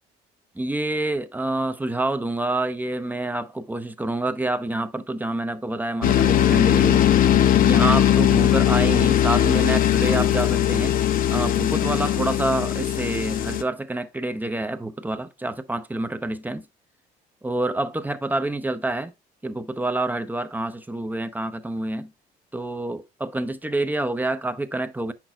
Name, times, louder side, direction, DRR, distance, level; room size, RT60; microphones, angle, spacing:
voice 1, 0.6-7.0 7.6-10.9 11.3-16.6 17.4-19.1 19.4-22.1 22.5-25.1, right 2 dB, 10° right, 0.5 m, -27 dB
sound 1, 6.0-13.6, left 11 dB, 55° left, 0.6 m, -19 dB
7.7 x 5.8 x 2.3 m
cardioid pair, 110°, 17 cm